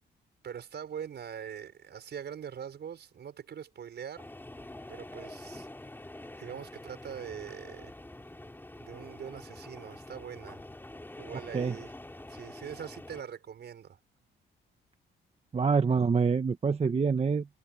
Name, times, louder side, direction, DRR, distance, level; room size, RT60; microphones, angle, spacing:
voice 1, 0.4-4.3 4.9-5.7 6.4-7.9 8.8-10.6 11.2-11.9 12.3-14.0, right 8 dB, 60° right, 6.2 m, -42 dB
sound 1, 4.2-13.2, left 1 dB, 10° left, 4.3 m, -46 dB
voice 2, 15.5-17.6, right 5 dB, 30° right, 1.3 m, -26 dB
cardioid pair, 90°, 20 cm